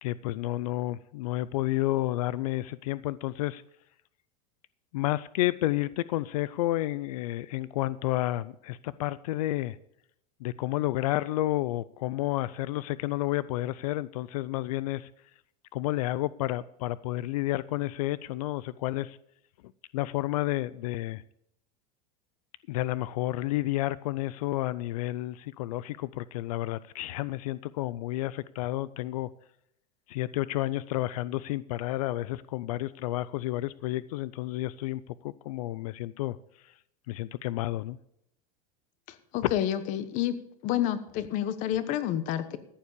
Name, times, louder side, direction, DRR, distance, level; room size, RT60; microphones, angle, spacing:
voice 1, 0.0-3.6 4.9-9.8 10.4-15.1 15.7-19.2 19.9-21.2 22.7-29.3 30.1-36.4 36.6-36.7 37.1-38.0, left 16 dB, 90° left, 18 dB, 0.5 m, -31 dB
voice 2, 39.1-40.3 40.6-42.6, left 11 dB, 45° left, 12 dB, 1.1 m, -29 dB
14.0 x 7.3 x 6.7 m, 0.75 s
supercardioid pair, 155°, 18 cm